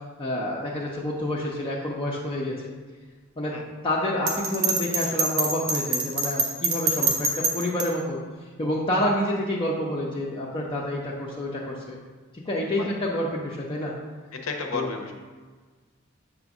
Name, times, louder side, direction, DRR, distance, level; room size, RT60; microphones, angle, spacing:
voice 1, 0.2-2.6 3.4-3.5 3.8-8.2 8.6-12.0 12.5-13.9 14.7-14.9, left 1 dB, 25° left, -4 dB, 0.7 m, -28 dB
Bell, 4.3-7.9, right 3 dB, 90° right, 1.1 m, -24 dB
voice 2, 14.3-15.1, left 4 dB, 75° left, 3 dB, 0.9 m, -32 dB
7.6 x 2.6 x 5.9 m, 1.4 s
head